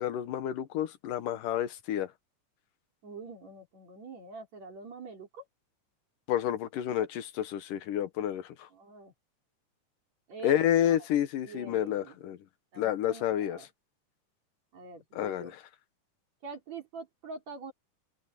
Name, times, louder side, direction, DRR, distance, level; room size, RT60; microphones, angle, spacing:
voice 1, 0.0-2.1 6.3-8.7 10.4-12.4 12.8-13.6 15.1-15.5, left 11 dB, 85° left, 2.9 m, -29 dB
voice 2, 3.0-5.5 7.0-7.1 8.7-9.1 10.3-11.0 11.4-12.2 12.7-13.7 14.7-15.6 16.4-17.7, right 4 dB, 55° right, 5.2 m, -45 dB
open air
omnidirectional pair, 3.7 m